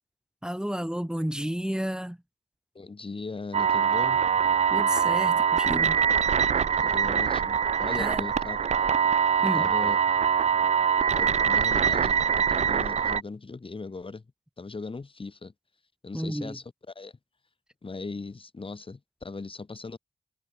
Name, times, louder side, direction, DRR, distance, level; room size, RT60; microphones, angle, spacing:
voice 1, 0.4-2.2 4.7-6.0 7.9-8.3 9.4-9.7 16.1-16.6, equal, 5° right, 1.5 m, -31 dB
voice 2, 2.7-4.2 6.8-8.7 9.5-10.0 11.1-14.2 14.6-15.5 16.0-17.1 17.8-20.0, left 3 dB, 40° left, 1.7 m, -39 dB
sound 1, 3.5-13.2, right 7 dB, 55° right, 0.4 m, -23 dB
wide cardioid pair, 75°, 14 cm